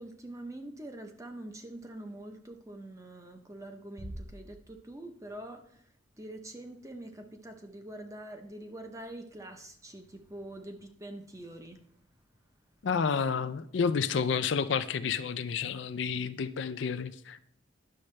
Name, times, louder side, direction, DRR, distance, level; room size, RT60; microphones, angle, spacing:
voice 1, 0.0-11.8, right 1 dB, 15° right, 5 dB, 0.8 m, -45 dB
Bass drum, 4.0-5.4, right 1 dB, 45° right, 1.3 m, -45 dB
voice 2, 12.8-17.4, left 6 dB, 65° left, 12 dB, 0.4 m, -30 dB
10.0 x 6.4 x 3.3 m, 0.65 s
head